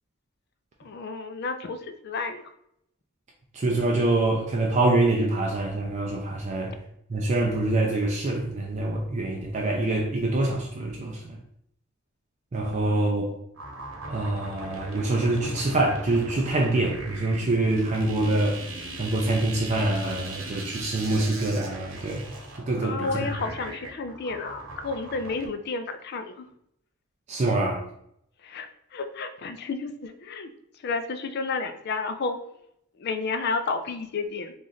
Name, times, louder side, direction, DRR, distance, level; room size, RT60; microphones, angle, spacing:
voice 1, 0.8-2.5 12.7-13.1 22.8-26.5 28.4-30.5 30.8-32.4 33.0-34.5, left 4 dB, 55° left, 8 dB, 0.4 m, -31 dB
voice 2, 3.5-6.7 7.1-11.4 12.5-13.3 14.1-18.6 19.0-22.3 22.6-23.3 27.3-27.8, right 2 dB, 35° right, -1 dB, 0.4 m, -25 dB
sound 1, 13.6-25.5, right 2 dB, 80° right, 1.0 m, -39 dB
3.1 x 2.5 x 3.9 m, 0.74 s
head